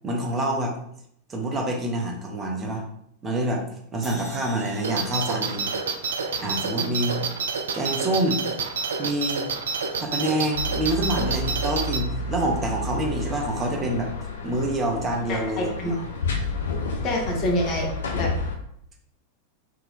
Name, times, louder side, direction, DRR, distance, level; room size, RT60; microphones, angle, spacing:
voice 1, 0.0-0.7 1.3-2.8 3.2-3.6 3.9-5.7 6.4-7.2 7.7-8.4 9.0-9.5 10.0-14.1 14.4-16.0, right 1 dB, 20° right, 1 dB, 0.7 m, -26 dB
sound 1, 4.0-7.2, equal, 5° left, 1.1 m, -45 dB
sound 2, 4.8-12.0, right 5 dB, 65° right, 0.3 m, -28 dB
sound 3, 10.5-18.6, left 2 dB, 65° left, 0.4 m, -30 dB
voice 2, 15.3-15.9 17.0-18.3, left 1 dB, 35° left, 0 dB, 0.7 m, -27 dB
2.6 x 2.3 x 3.5 m, 0.71 s
figure-of-eight pair, 90°, 0 cm